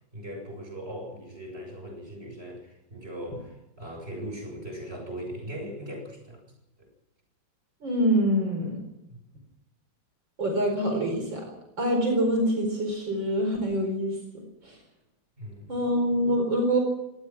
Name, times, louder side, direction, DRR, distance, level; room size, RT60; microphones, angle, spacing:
voice 1, 0.1-6.5 6.8-6.9 9.1-9.2 15.4-15.9, equal, 30° right, 3 dB, 7.9 m, -39 dB
voice 2, 7.8-8.8 10.4-11.4 11.8-14.2 14.6-14.8 15.7-16.8, equal, 65° right, 3 dB, 5.3 m, -25 dB
26.0 x 18.0 x 6.1 m, 0.87 s
omnidirectional pair, 2.2 m